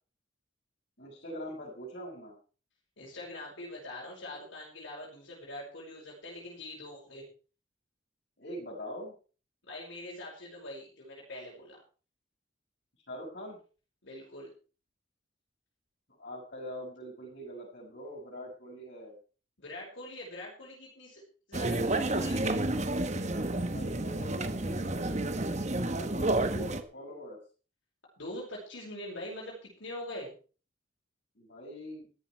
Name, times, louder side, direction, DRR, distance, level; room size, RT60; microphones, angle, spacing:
voice 1, 1.0-2.4 8.4-9.1 13.1-13.6 16.2-19.2 23.6-25.3 25.9-27.4 31.4-32.1, equal, 55° left, -4 dB, 6.1 m, -43 dB
voice 2, 3.0-7.3 9.7-11.8 14.0-14.5 19.6-21.2 21.5-22.6 28.2-30.3, left 1 dB, 75° left, -4 dB, 5.5 m, -43 dB
sound 1, 21.5-26.8, right 2 dB, 35° right, 1.3 m, -30 dB
14.0 x 12.0 x 4.6 m, 0.38 s
head